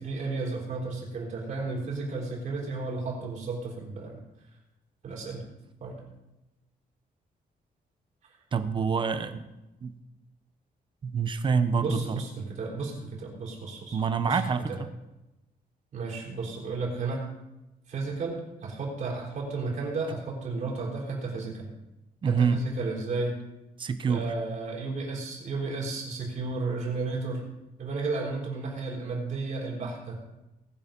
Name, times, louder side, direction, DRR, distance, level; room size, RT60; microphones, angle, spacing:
voice 1, 0.0-4.2 5.0-5.4 5.8-6.0 11.8-14.0 14.2-14.4 14.7-14.8 15.9-17.2 17.9-21.7 22.2-23.4 24.1-27.4 27.8-30.2, right 3 dB, 50° right, -2 dB, 4.2 m, -33 dB
voice 2, 8.5-9.5 9.8-10.0 11.0-12.2 13.9-14.7 22.2-22.6 23.8-24.2, right 5 dB, 30° right, 11 dB, 0.8 m, -26 dB
20.0 x 6.9 x 5.3 m, 0.98 s
wide cardioid pair, 175°, 16 cm